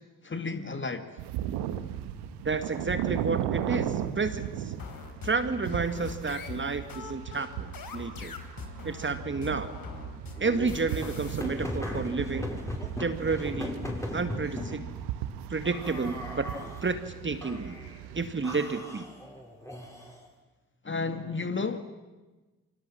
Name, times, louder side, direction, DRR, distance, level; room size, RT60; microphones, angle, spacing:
voice 1, 0.2-1.1 20.8-21.8, left 4 dB, 25° left, 1.8 m, -32 dB
sound 1, 1.2-18.6, right 11 dB, 65° right, 1.5 m, -37 dB
voice 2, 2.4-4.7 5.2-8.3 8.8-9.7 10.4-12.5 13.0-13.8 14.1-14.8 15.5-17.0 17.2-17.8 18.1-19.1, right 4 dB, 25° right, 1.9 m, -31 dB
sound 2, 4.8-11.4, left 5 dB, 50° left, 3.6 m, -43 dB
sound 3, 10.4-14.8 15.6-16.9 17.4-18.0 18.4-20.3, left 1 dB, 5° left, 6.9 m, -38 dB
29.5 x 24.5 x 7.5 m
figure-of-eight pair, 40°, 44 cm